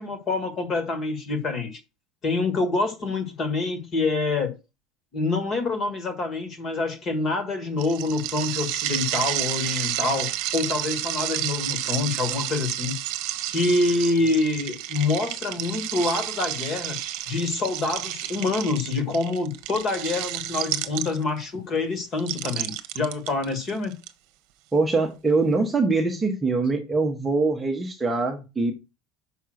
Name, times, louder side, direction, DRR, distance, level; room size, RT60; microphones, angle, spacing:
voice 1, 0.0-1.8 2.2-4.6 5.1-13.0 13.5-17.0 17.3-24.0, left 3 dB, 25° left, 1.6 m, -26 dB
sound 1, 7.8-21.4 22.2-24.1, right 14 dB, 50° right, 1.0 m, -31 dB
voice 2, 24.7-28.7, right 3 dB, 10° right, 1.0 m, -23 dB
5.8 x 5.5 x 6.3 m
cardioid pair, 175°, 0 cm